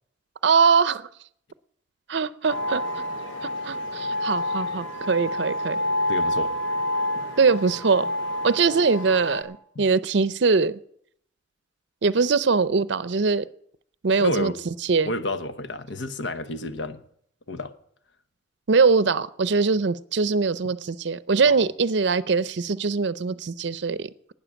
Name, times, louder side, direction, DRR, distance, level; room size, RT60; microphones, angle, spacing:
voice 1, 0.4-1.0 2.1-2.8 3.6-5.8 7.4-8.1 8.4-10.7 12.0-13.4 14.0-14.5 14.9-15.1 18.7-24.3, right 4 dB, 65° right, 16 dB, 0.5 m, -22 dB
sound 1, 2.5-9.4, left 1 dB, 90° left, 2.5 m, -28 dB
voice 2, 6.1-6.5 7.2-7.3 9.7-9.8 14.2-14.6 15.1-17.0 17.5-17.7 21.5-21.7, left 2 dB, 70° left, 11 dB, 1.0 m, -30 dB
12.0 x 9.5 x 8.6 m, 0.67 s
head